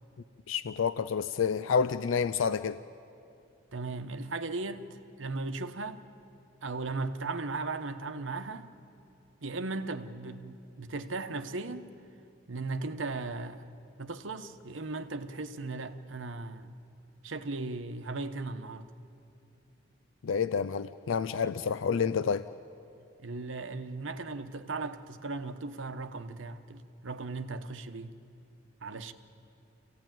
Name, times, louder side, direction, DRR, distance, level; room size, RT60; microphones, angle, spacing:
voice 1, 0.5-2.8 20.2-22.5, left 6 dB, 85° left, 0.4 m, -29 dB
voice 2, 3.7-6.0 6.6-8.7 9.4-11.9 12.5-13.7 14.0-16.8 17.2-18.9 23.2-28.1 28.8-29.1, right 3 dB, 75° right, 1.0 m, -37 dB
26.5 x 16.0 x 9.1 m
head